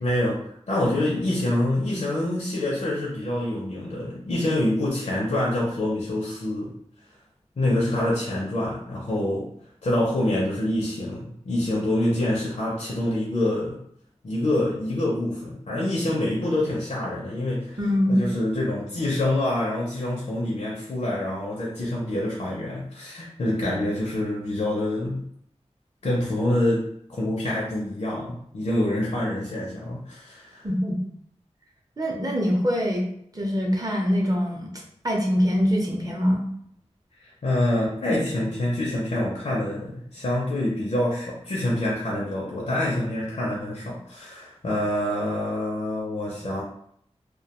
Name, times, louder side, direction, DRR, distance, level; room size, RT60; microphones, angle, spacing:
voice 1, 0.0-6.7 7.6-9.5 9.8-13.8 14.2-17.8 18.1-25.2 26.0-30.7 37.2-46.6, left 1 dB, 65° left, -5 dB, 0.5 m, -26 dB
voice 2, 17.8-18.2 30.6-31.0 32.0-33.1 33.3-34.7 35.0-36.5, equal, 30° right, -1 dB, 0.6 m, -23 dB
2.2 x 2.2 x 2.8 m, 0.68 s
wide cardioid pair, 75°, 12 cm